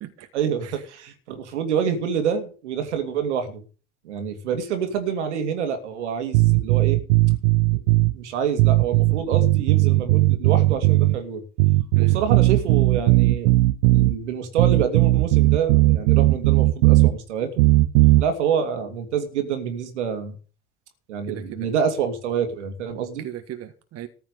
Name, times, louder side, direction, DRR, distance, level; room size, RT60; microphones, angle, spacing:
voice 1, 0.3-3.6 4.0-7.0 7.7-11.4 12.1-13.5 13.9-17.6 18.2-20.4 21.1-23.3, right 7 dB, 75° right, 2.5 m, -27 dB
sound 1, 6.3-8.1 8.6-11.2 11.6-14.2 14.6-17.1 17.6-18.2, right 20 dB, 60° right, 0.7 m, -17 dB
voice 2, 21.3-21.7 23.2-24.1, right 12 dB, 45° right, 1.7 m, -37 dB
14.0 x 5.7 x 8.3 m
figure-of-eight pair, 70°, 35 cm